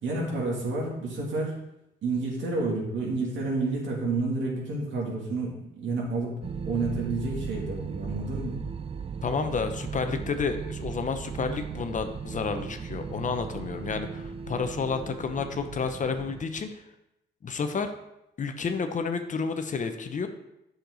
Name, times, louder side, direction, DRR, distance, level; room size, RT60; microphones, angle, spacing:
voice 1, 0.0-1.6 2.0-6.4 6.6-8.6, right 3 dB, 70° right, -2 dB, 2.7 m, -30 dB
sound 1, 6.4-16.5, right 6 dB, 30° right, 0.5 m, -37 dB
voice 2, 9.2-16.7 17.4-17.9 18.4-20.3, left 5 dB, 40° left, 7 dB, 0.8 m, -30 dB
7.7 x 6.6 x 3.9 m, 0.87 s
cardioid pair, 90°, 20 cm